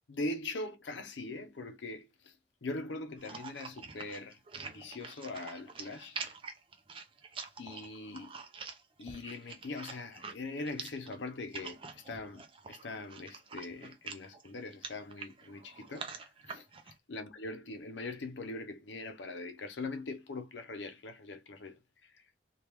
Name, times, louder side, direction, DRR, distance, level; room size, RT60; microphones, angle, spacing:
voice 1, 0.1-2.3 2.6-6.3 7.6-8.4 9.0-22.2, left 2 dB, 90° left, 0.6 m, -42 dB
sound 1, 3.2-16.9, right 5 dB, 30° right, 0.4 m, -46 dB
3.3 x 2.3 x 2.9 m
head